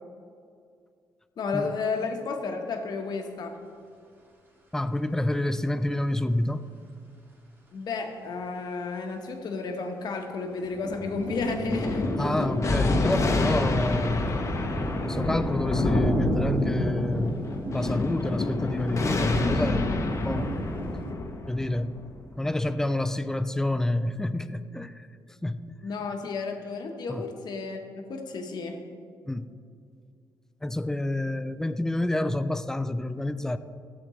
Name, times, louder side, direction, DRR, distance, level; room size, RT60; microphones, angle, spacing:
voice 1, 1.4-3.6 7.7-12.1 25.8-28.8, left 4 dB, 60° left, 4 dB, 1.2 m, -32 dB
voice 2, 4.7-6.7 12.2-14.2 15.0-17.4 17.7-19.9 20.2-20.6 21.5-22.0 22.4-25.1 25.4-25.6 27.1-27.3 29.3-29.5 30.6-33.6, left 1 dB, 5° left, 12 dB, 0.4 m, -28 dB
sound 1, 10.4-21.1, right 1 dB, 25° right, 1.9 m, -33 dB
Thunder, 11.7-22.5, left 2 dB, 40° left, 0.9 m, -28 dB
13.5 x 7.3 x 3.2 m, 2.3 s
cardioid pair, 100°, 8 cm